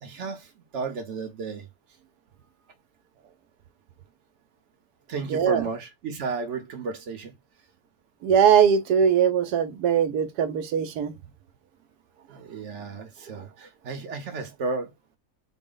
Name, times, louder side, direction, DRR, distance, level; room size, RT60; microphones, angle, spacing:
voice 1, 0.0-1.7 5.1-7.3 12.3-14.9, right 4 dB, 55° right, 0.9 m, -33 dB
voice 2, 5.3-5.6 8.2-11.1, right 8 dB, 80° right, 1.2 m, -21 dB
4.0 x 2.0 x 3.7 m
omnidirectional pair, 1.7 m